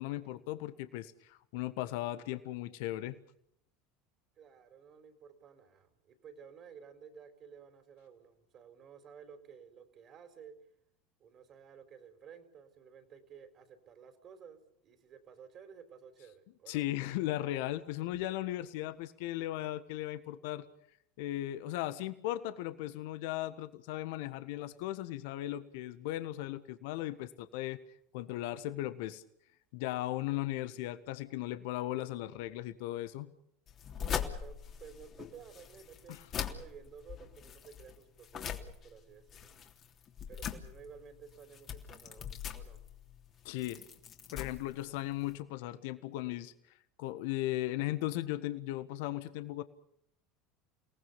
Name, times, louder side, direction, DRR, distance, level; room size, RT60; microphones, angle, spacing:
voice 1, 0.0-3.2 16.7-20.6 21.2-27.8 28.1-29.2 29.7-33.3 36.1-36.2 43.4-43.8 44.3-46.5 47.0-49.6, left 15 dB, 65° left, 12 dB, 1.5 m, -37 dB
voice 2, 4.4-10.6 11.2-16.9 34.0-39.6 40.3-42.8, right 7 dB, 45° right, 9 dB, 4.3 m, -54 dB
sound 1, 33.7-45.4, left 8 dB, 40° left, 3.3 m, -42 dB
29.5 x 19.0 x 7.0 m, 0.71 s
hypercardioid pair, 75°, 0 cm